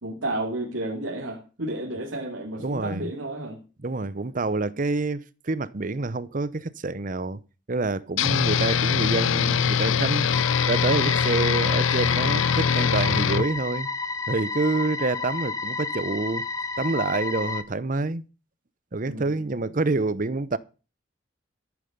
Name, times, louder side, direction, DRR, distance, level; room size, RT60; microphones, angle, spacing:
voice 1, 0.0-3.6 19.1-19.5, right 1 dB, 80° right, 2.7 m, -32 dB
voice 2, 2.6-3.1 3.8-7.4 7.7-13.9 14.3-16.4 16.8-18.2 18.9-20.6, right 3 dB, 40° right, 0.7 m, -27 dB
sound 1, 8.2-13.5, left 7 dB, 85° left, 0.6 m, -23 dB
sound 2, 10.3-17.6, left 4 dB, 15° left, 1.0 m, -31 dB
13.5 x 9.6 x 5.4 m
head